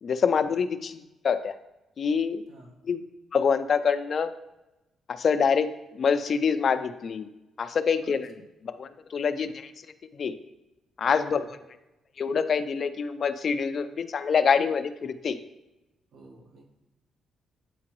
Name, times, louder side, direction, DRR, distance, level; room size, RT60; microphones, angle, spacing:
voice 1, 0.0-1.5 2.0-2.4 2.8-3.0 3.3-4.3 5.1-5.7 5.9-7.3 7.6-8.3 8.6-9.7 10.1-10.4 11.0-11.6 12.2-15.4, left 6 dB, 55° left, 10 dB, 0.4 m, -26 dB
voice 2, 11.1-11.5 16.1-16.6, right 2 dB, 75° right, -2 dB, 1.3 m, -51 dB
8.5 x 3.7 x 3.0 m, 0.96 s
cardioid pair, 70°, 0 cm